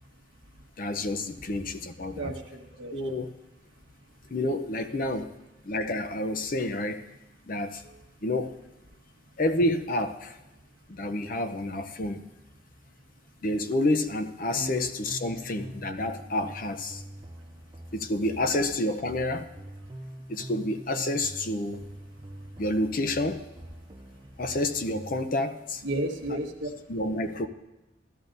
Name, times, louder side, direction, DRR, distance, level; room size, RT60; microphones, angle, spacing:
voice 1, 0.8-2.3 2.9-3.3 4.3-5.3 5.6-7.0 7.5-7.8 8.2-8.6 9.4-10.4 10.9-12.3 13.4-17.0 17.9-19.5 20.3-21.8 22.6-23.5 24.4-25.8 26.9-27.5, left 1 dB, 45° left, 9 dB, 0.6 m, -29 dB
voice 2, 2.1-2.9 4.9-5.1 7.8-7.9 14.5-14.7 25.8-26.7, right 1 dB, 80° right, 3 dB, 1.3 m, -33 dB
sound 1, 14.6-25.2, right 1 dB, 20° right, 0.6 m, -44 dB
16.0 x 12.5 x 2.6 m, 1.0 s
head